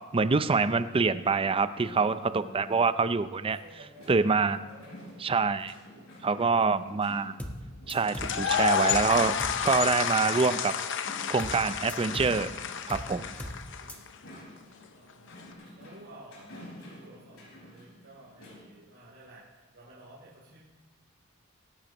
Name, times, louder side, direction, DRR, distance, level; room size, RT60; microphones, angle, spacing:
voice 1, 0.1-3.6 4.1-4.6 5.2-5.7 6.2-7.3 7.9-9.4 9.6-10.7 11.3-12.5 12.9-13.3, right 4 dB, 25° right, 12 dB, 0.5 m, -25 dB
voice 2, 1.7-2.9 3.5-4.3 4.6-5.3 5.7-6.6 13.8-14.4 14.8-20.6, right 1 dB, 60° right, -8 dB, 3.5 m, -52 dB
sound 1, 4.0-18.7, left 1 dB, 85° left, 5.5 m, -50 dB
sound 2, 7.4-7.6 7.9-8.4 8.9-9.1 9.4-9.6 11.4-11.6 11.9-12.4 12.9-13.1 13.4-13.6 13.9-14.0, equal, 5° left, 1.2 m, -38 dB
sound 3, 8.1-14.1, left 7 dB, 65° left, 0.8 m, -30 dB
24.0 x 12.0 x 3.0 m, 1.3 s
head